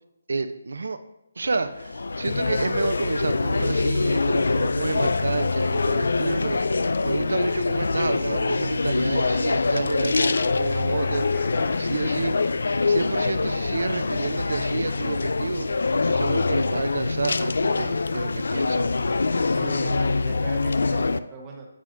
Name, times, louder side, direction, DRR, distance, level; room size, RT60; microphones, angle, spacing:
voice 1, 0.3-1.0 1.4-6.6 7.0-11.3 11.8-15.7 16.0-18.9, right 3 dB, 75° right, 9 dB, 0.7 m, -29 dB
sound 1, 1.4-21.2, left 3 dB, 75° left, 0.4 m, -24 dB
sound 2, 9.5-16.1, left 5 dB, 15° left, 0.5 m, -48 dB
voice 2, 19.5-21.7, right 3 dB, 15° right, -1 dB, 1.2 m, -38 dB
9.5 x 7.6 x 2.7 m, 0.92 s
hypercardioid pair, 170°, 0 cm